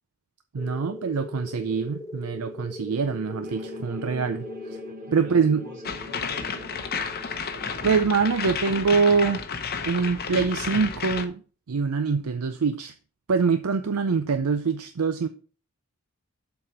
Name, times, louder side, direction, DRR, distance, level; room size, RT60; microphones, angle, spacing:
voice 1, 0.5-4.5 5.1-5.6 7.8-9.4 9.8-11.4 11.7-12.9 13.3-15.3, right 5 dB, 80° right, 0.5 m, -24 dB
sound 1, 0.6-8.9, left 2 dB, 15° left, 0.3 m, -41 dB
sound 2, 3.4-8.5, equal, 40° right, 1.0 m, -43 dB
voice 2, 5.1-7.2, left 1 dB, 55° right, 3.5 m, -47 dB
sound 3, 5.8-11.3, left 6 dB, 45° left, 0.8 m, -32 dB
7.7 x 4.2 x 5.5 m
head